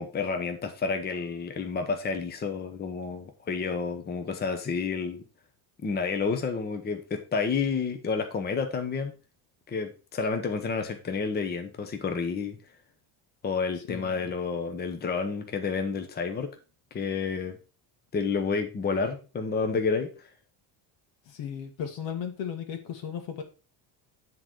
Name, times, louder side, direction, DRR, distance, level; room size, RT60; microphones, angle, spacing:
voice 1, 0.0-5.2 5.8-9.1 9.7-12.6 13.4-16.5 16.9-17.6 18.1-20.3, left 5 dB, 20° left, 6 dB, 0.8 m, -30 dB
voice 2, 13.9-14.3 21.3-23.4, left 8 dB, 75° left, 6 dB, 1.9 m, -36 dB
9.7 x 3.9 x 4.6 m, 0.33 s
cardioid pair, 145°, 45 cm